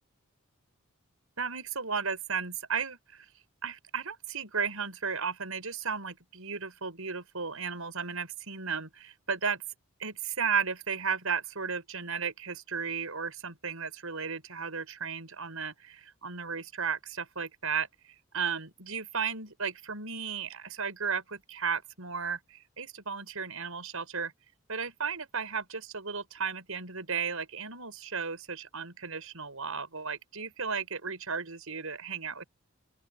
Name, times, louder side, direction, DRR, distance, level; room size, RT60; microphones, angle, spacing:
voice 1, 1.4-3.3 3.6-9.6 10.0-17.9 18.3-24.3 24.7-32.4, right 6 dB, 80° right, 6.1 m, -34 dB
open air
head